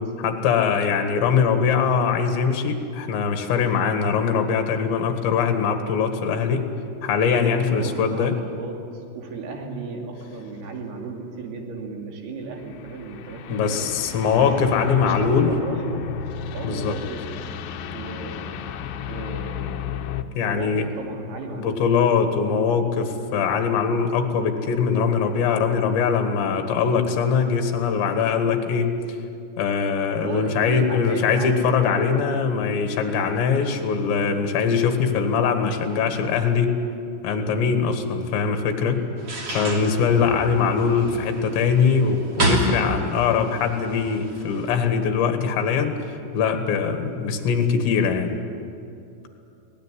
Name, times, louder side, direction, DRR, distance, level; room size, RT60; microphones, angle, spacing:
voice 1, 0.2-6.7 7.0-8.3 13.5-15.5 16.6-17.0 20.3-20.9 21.5-28.9 29.6-36.7 37.2-39.0 39.5-46.0 46.3-48.4, left 6 dB, 75° left, 6 dB, 3.9 m, -22 dB
voice 2, 7.5-13.9 14.4-16.1 16.5-17.6 17.9-18.4 19.1-19.8 20.4-21.9 30.2-32.5 40.3-40.6, right 4 dB, 60° right, 1 dB, 4.4 m, -35 dB
sound 1, 12.5-20.2, left 7 dB, 90° left, 2.0 m, -34 dB
sound 2, 39.2-44.7, right 1 dB, 35° right, 3.3 m, -29 dB
23.5 x 18.0 x 9.9 m, 2.6 s
omnidirectional pair, 5.3 m